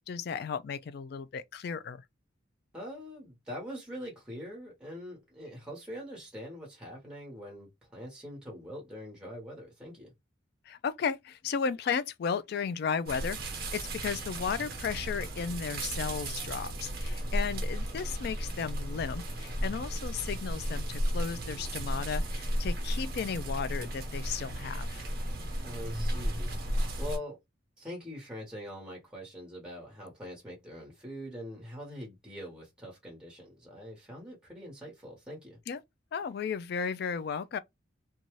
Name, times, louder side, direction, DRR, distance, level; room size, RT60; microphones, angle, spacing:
voice 1, 0.0-2.0 10.7-13.4 13.7-25.0 35.7-35.8 36.1-37.6, left 6 dB, 50° left, 0.3 m, -34 dB
voice 2, 2.7-10.1 25.6-26.5 27.0-27.4 27.8-35.6, equal, 5° right, 1.1 m, -43 dB
sound 1, 13.1-27.2, right 1 dB, 50° right, 0.9 m, -34 dB
2.6 x 2.3 x 3.0 m
head